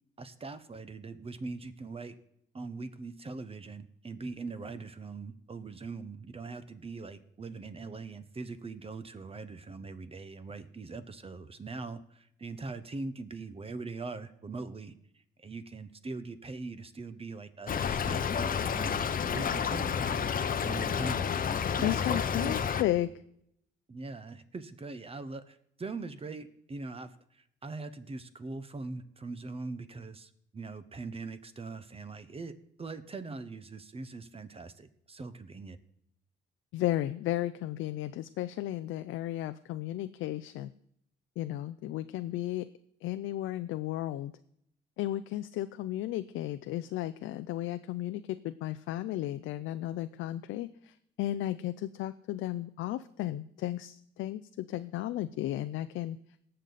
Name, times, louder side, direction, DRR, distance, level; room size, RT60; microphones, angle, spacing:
voice 1, 0.2-2.2 2.5-14.9 15.4-19.1 19.3-20.3 20.6-21.3 21.8-22.7 23.9-35.8, right 3 dB, 30° right, 12 dB, 1.0 m, -41 dB
Stream / Trickle dribble, 17.7-22.8, left 7 dB, 45° left, 0.8 m, -30 dB
voice 2, 21.8-23.1 36.7-40.7 41.4-42.7 43.0-44.3 45.0-56.2, left 14 dB, 85° left, 11 dB, 0.5 m, -34 dB
18.0 x 6.7 x 4.1 m, 0.71 s
cardioid pair, 90°, 20 cm